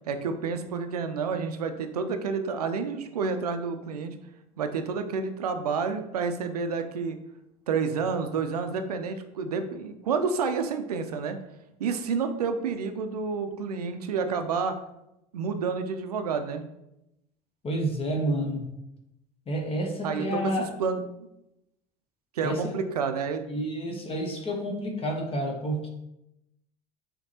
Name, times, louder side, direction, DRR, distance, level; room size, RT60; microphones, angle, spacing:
voice 1, 0.1-4.2 4.6-7.2 7.7-11.4 11.8-14.8 15.3-16.6 20.0-21.0 22.3-23.7, right 5 dB, 85° right, 8 dB, 0.5 m, -29 dB
voice 2, 17.6-18.8 19.5-20.7 22.4-22.7 23.5-25.9, right 1 dB, 30° left, 2 dB, 0.8 m, -29 dB
5.9 x 2.9 x 2.8 m, 0.87 s
hypercardioid pair, 70°, 19 cm